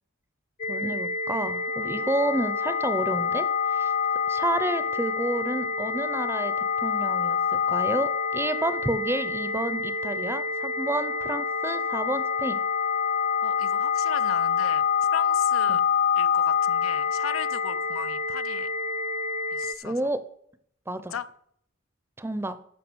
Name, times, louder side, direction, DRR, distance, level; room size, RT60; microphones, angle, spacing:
sound 1, 0.6-19.7, left 6 dB, 35° left, 0.5 m, -26 dB
voice 1, 0.7-3.5 3.7-3.9 4.3-12.6 15.7-15.8 19.8-20.2 20.9-21.2 22.2-22.6, right 1 dB, 10° right, 0.6 m, -30 dB
voice 2, 13.4-14.8 15.1-15.8 16.2-18.7 19.5-20.1 21.1-21.3, left 7 dB, 80° left, 0.7 m, -37 dB
14.0 x 5.9 x 6.2 m
head